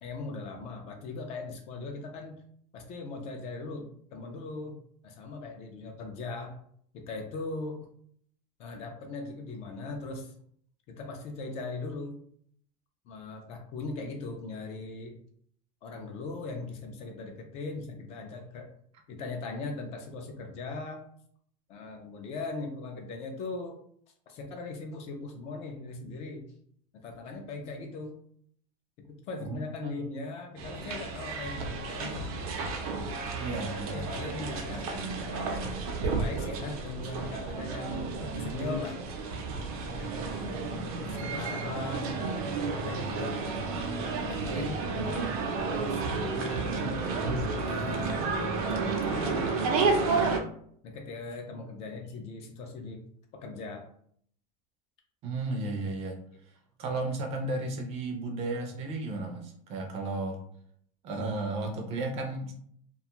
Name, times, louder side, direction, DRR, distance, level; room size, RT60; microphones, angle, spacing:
voice 1, 0.0-2.4 2.7-4.8 5.0-6.6 6.9-7.9 8.6-10.3 10.9-12.2 13.1-15.2 15.8-18.7 19.1-21.0 21.7-23.8 24.3-26.4 27.0-28.1 29.0-32.3 33.4-35.7 36.0-39.0 39.9-42.2 42.8-45.3 45.7-46.8 47.6-48.3 48.9-50.2 50.8-53.0 53.3-53.9, left 3 dB, 35° left, 3 dB, 0.4 m, -39 dB
voice 2, 29.4-30.0 33.4-34.1 55.2-56.2 56.8-60.4 61.0-62.5, right 2 dB, 35° right, 3 dB, 0.5 m, -34 dB
sound 1, 30.6-50.4, right 4 dB, 85° right, 0.6 m, -31 dB
2.4 x 2.3 x 2.9 m, 0.63 s
supercardioid pair, 165°, 19 cm